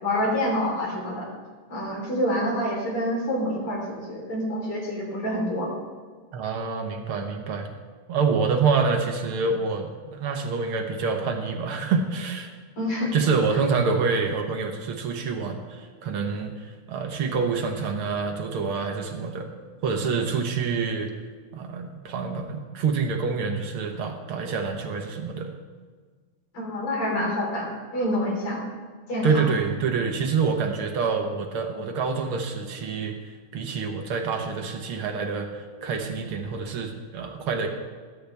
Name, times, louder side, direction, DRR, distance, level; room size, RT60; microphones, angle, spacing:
voice 1, 0.0-1.3 1.7-5.7 12.8-13.1 13.5-13.6 26.5-28.6 29.1-29.5, left 1 dB, 40° left, -3 dB, 4.6 m, -27 dB
voice 2, 6.3-7.7 8.1-12.5 13.1-19.5 19.8-21.1 21.5-25.5 29.2-37.7, right 5 dB, 65° right, 3 dB, 1.4 m, -27 dB
21.0 x 10.0 x 3.5 m, 1.5 s
omnidirectional pair, 3.8 m